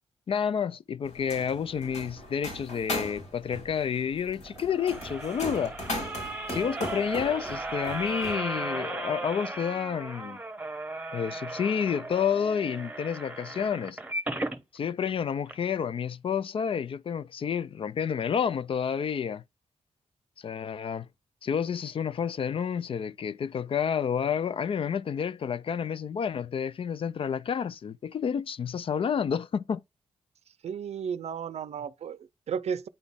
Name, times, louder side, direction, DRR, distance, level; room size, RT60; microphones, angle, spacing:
voice 1, 0.3-5.8 6.5-10.4 11.1-14.0 14.7-19.4 20.4-21.1 21.4-29.8, left 7 dB, 55° left, 0.4 m, -30 dB
sound 1, 1.0-8.4, left 1 dB, 85° left, 3.7 m, -38 dB
sound 2, 4.4-14.6 15.1-15.2 15.5-15.6, right 2 dB, 15° right, 0.9 m, -36 dB
voice 2, 30.6-32.9, right 7 dB, 70° right, 0.5 m, -34 dB
8.8 x 4.0 x 3.4 m
cardioid pair, 85°, 11 cm